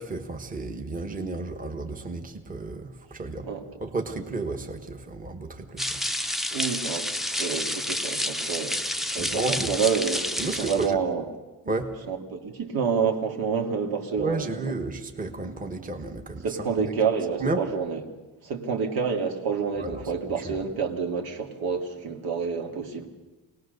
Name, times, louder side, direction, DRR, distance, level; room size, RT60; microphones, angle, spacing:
voice 1, 0.0-3.5 3.8-6.0 9.2-9.7 10.4-11.0 11.6-11.9 14.2-16.9 17.4-17.6 19.8-20.0 20.4-20.6, right 3 dB, 25° right, 4 dB, 1.3 m, -32 dB
sound 1, 5.8-10.9, left 1 dB, ahead, 0.6 m, -29 dB
voice 2, 6.5-7.1 7.4-8.8 9.1-10.2 10.6-11.3 12.1-14.7 16.4-18.0 18.4-23.1, right 6 dB, 80° right, 3 dB, 2.5 m, -28 dB
25.5 x 19.0 x 6.7 m, 1.2 s
cardioid pair, 160°, 36 cm